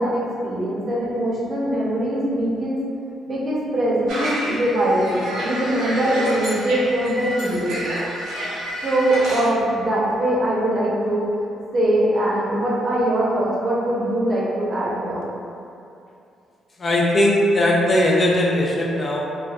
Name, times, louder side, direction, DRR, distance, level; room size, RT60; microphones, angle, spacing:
voice 1, 0.0-2.8 3.3-7.8 8.8-11.3 11.7-15.3, right 1 dB, 45° right, -6 dB, 0.7 m, -22 dB
sound 1, 4.1-9.5, right 1 dB, 85° right, 0.7 m, -29 dB
voice 2, 16.8-19.2, left 1 dB, 35° left, -2 dB, 0.4 m, -19 dB
3.2 x 2.2 x 2.4 m, 2.6 s
cardioid pair, 90°, 0 cm